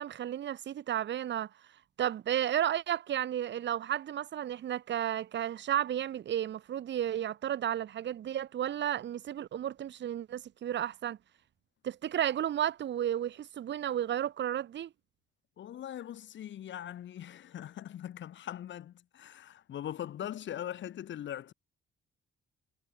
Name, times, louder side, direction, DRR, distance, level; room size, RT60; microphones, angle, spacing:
voice 1, 0.0-1.5 2.0-11.2 11.8-14.9, right 10 dB, 65° right, 1.6 m, -33 dB
voice 2, 15.6-21.5, left 11 dB, 70° left, 3.5 m, -41 dB
cardioid pair, 90°, 20 cm